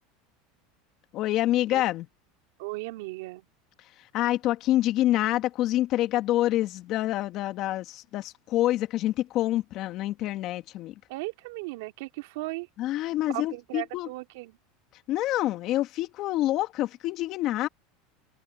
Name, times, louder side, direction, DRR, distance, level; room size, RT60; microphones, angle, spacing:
voice 1, 1.1-2.1 4.1-10.9 12.8-14.1 15.1-17.7, left 14 dB, 50° left, 1.9 m, -27 dB
voice 2, 2.6-3.5 11.1-12.7 13.3-14.6, right 22 dB, 75° right, 2.6 m, -36 dB
supercardioid pair, 120°, 0 cm